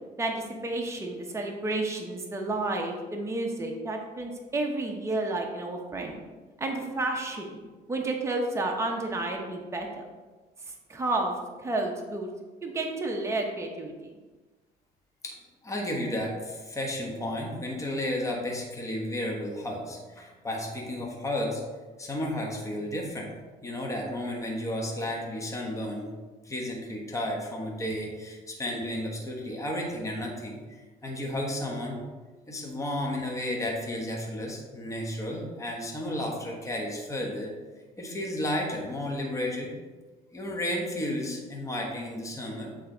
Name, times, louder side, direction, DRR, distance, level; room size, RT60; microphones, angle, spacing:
voice 1, 0.2-6.2 6.6-7.6 7.9-10.0 10.9-11.3 11.6-12.3 12.6-14.1, right 2 dB, 15° right, 1 dB, 0.8 m, -31 dB
voice 2, 15.6-21.6 22.0-23.3 23.6-26.1 26.4-32.0 32.5-37.5 38.0-39.7 40.3-42.7, left 1 dB, 20° left, -1 dB, 1.3 m, -32 dB
7.9 x 3.4 x 3.9 m, 1.3 s
cardioid pair, 110°, 17 cm